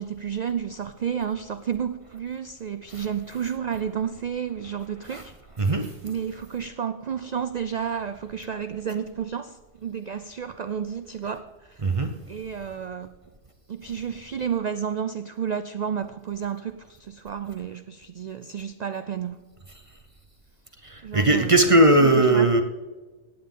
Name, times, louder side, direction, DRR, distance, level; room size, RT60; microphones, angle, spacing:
voice 1, 0.0-5.3 6.0-11.8 12.3-13.1 13.7-19.5 21.0-22.5, right 7 dB, 85° right, 11 dB, 0.3 m, -31 dB
voice 2, 5.6-5.9 11.8-12.1 20.8-22.6, right 2 dB, 30° right, 6 dB, 0.7 m, -19 dB
16.0 x 9.3 x 3.7 m, 1.3 s
omnidirectional pair, 1.3 m